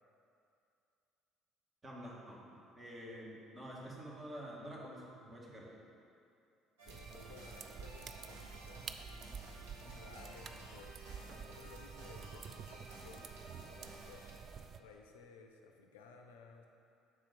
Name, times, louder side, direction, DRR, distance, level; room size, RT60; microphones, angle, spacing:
voice 1, 1.8-2.4 2.7-5.7, equal, 25° right, -4 dB, 1.6 m, -48 dB
voice 2, 6.8-9.4 9.8-14.3 14.8-16.7, left 5 dB, 70° left, 3 dB, 0.4 m, -58 dB
sound 1, 6.8-14.3, right 2 dB, 75° right, 1.0 m, -54 dB
sound 2, 6.9-14.8, right 6 dB, 45° right, 0.3 m, -50 dB
6.1 x 4.3 x 5.9 m, 2.6 s
figure-of-eight pair, 55°, 0 cm